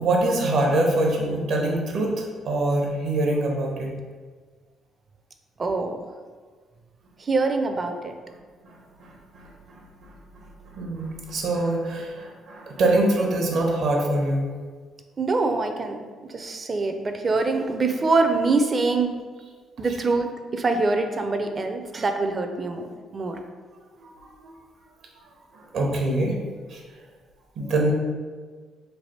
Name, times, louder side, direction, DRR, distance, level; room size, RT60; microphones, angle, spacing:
voice 1, 0.0-3.9 8.6-14.5 24.0-24.5 25.5-26.4 26.7-26.8 27.6-27.9, right 2 dB, 70° right, 0 dB, 0.8 m, -25 dB
voice 2, 5.6-6.0 7.2-8.1 15.2-16.0 16.3-19.1 19.8-23.4, right 3 dB, 35° right, 6 dB, 0.4 m, -24 dB
3.3 x 2.5 x 4.2 m, 1.5 s
cardioid pair, 85°, 0 cm